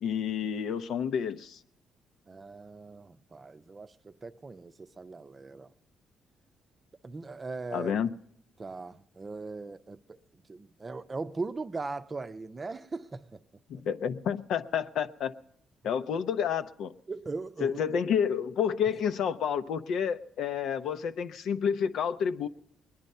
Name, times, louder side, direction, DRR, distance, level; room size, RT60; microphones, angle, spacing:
voice 1, 0.0-1.6 7.7-8.1 13.7-15.3 15.8-16.9 17.6-22.5, left 7 dB, 75° left, 0.7 m, -29 dB
voice 2, 2.3-5.7 7.0-8.0 8.6-10.2 10.5-13.4 13.7-13.8 17.1-18.0, right 3 dB, 30° right, 0.6 m, -39 dB
21.0 x 10.5 x 5.4 m
cardioid pair, 90°, 0 cm